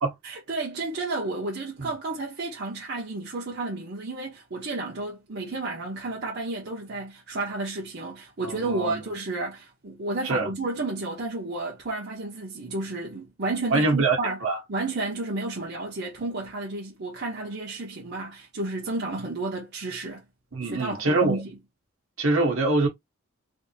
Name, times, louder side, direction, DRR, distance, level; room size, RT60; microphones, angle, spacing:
voice 1, 0.2-14.4 14.7-20.2 20.6-21.5, right 2 dB, 55° right, 0.9 m, -32 dB
voice 2, 8.4-9.0 10.2-10.5 13.7-14.2 14.4-14.6 20.5-21.4 22.2-22.9, right 3 dB, 70° right, 1.2 m, -24 dB
3.5 x 2.7 x 2.8 m
head